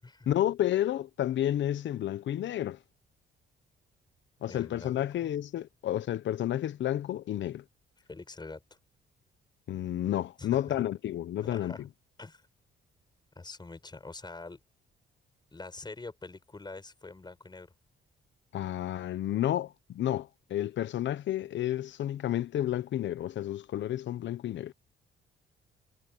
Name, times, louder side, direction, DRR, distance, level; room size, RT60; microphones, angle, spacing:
voice 1, 0.3-2.8 4.4-7.6 9.7-11.9 18.5-24.7, left 12 dB, 65° left, 0.9 m, -31 dB
voice 2, 4.5-5.4 8.1-8.6 10.4-10.8 11.4-11.9 12.2-12.4 13.4-14.6 15.5-17.7, left 3 dB, 20° left, 5.9 m, -45 dB
cardioid pair, 90°, 20 cm